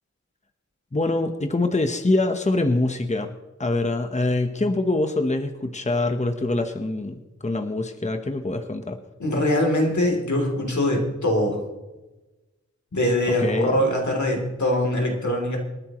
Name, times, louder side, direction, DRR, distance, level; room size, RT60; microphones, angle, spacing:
voice 1, 0.9-3.3 3.6-9.0 13.3-13.9, left 2 dB, 25° left, 6 dB, 1.0 m, -24 dB
voice 2, 9.2-11.6 12.9-15.6, left 1 dB, 80° left, 0 dB, 3.2 m, -22 dB
27.0 x 9.9 x 3.1 m, 1.1 s
wide cardioid pair, 55°, 29 cm